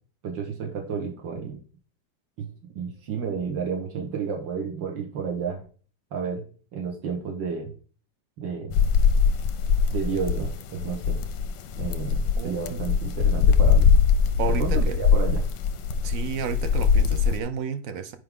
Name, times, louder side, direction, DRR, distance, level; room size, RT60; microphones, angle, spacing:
voice 1, 0.2-1.6 2.4-2.5 2.8-5.6 6.1-6.4 6.7-7.7 8.4-8.8 9.9-11.2 11.7-13.9 14.5-15.5, right 6 dB, 85° right, 1 dB, 2.0 m, -31 dB
sound 1, 8.7-17.4, left 6 dB, 90° left, 1.4 m, -21 dB
voice 2, 12.4-12.8 14.4-15.0 16.0-18.2, right 6 dB, 65° right, 9 dB, 0.8 m, -31 dB
8.6 x 5.1 x 3.6 m, 0.40 s
omnidirectional pair, 2.0 m